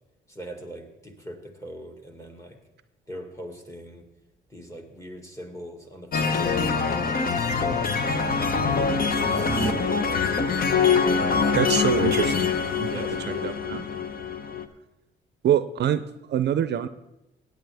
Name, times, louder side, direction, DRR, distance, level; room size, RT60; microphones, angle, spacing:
voice 1, 0.3-2.6 3.1-4.0 4.5-10.8 11.2-12.5 12.9-14.0, equal, 15° left, 3 dB, 2.0 m, -41 dB
sound 1, 6.1-14.6, left 5 dB, 45° left, 0.9 m, -24 dB
sound 2, 9.1-9.7, right 4 dB, 15° right, 1.1 m, -29 dB
voice 2, 11.6-12.5 12.8-13.0 13.4-13.8 15.4-16.0 16.3-16.9, right 10 dB, 60° right, 12 dB, 0.5 m, -24 dB
16.5 x 9.3 x 3.4 m, 0.93 s
cardioid pair, 90°, 20 cm